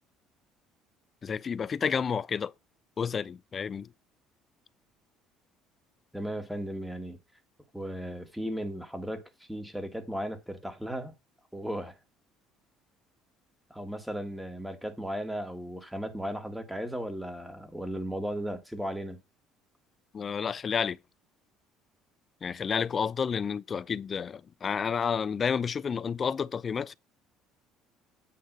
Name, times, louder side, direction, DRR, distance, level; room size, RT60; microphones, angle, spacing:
voice 1, 1.2-2.5 3.0-3.9 20.1-21.0 22.4-26.9, left 6 dB, 35° left, 0.4 m, -30 dB
voice 2, 6.1-7.2 7.7-11.1 11.5-12.0 13.7-19.2, equal, ahead, 1.6 m, -36 dB
8.8 x 3.3 x 6.5 m
supercardioid pair, 100°, 0 cm